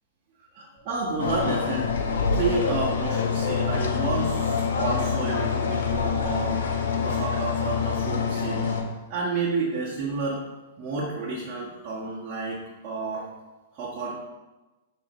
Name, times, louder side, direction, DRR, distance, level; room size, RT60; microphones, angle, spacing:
voice 1, 0.5-1.9 2.3-6.6 7.0-8.7 9.1-10.4 10.8-12.6 12.8-13.3 13.7-14.1, right 3 dB, 35° right, -6 dB, 1.5 m, -30 dB
sound 1, 0.8-8.6, left 12 dB, 10° right, 1.7 m, -36 dB
sound 2, 1.2-8.8, left 5 dB, 75° left, 0.8 m, -26 dB
7.4 x 4.5 x 3.1 m, 1.1 s
hypercardioid pair, 130°, 0 cm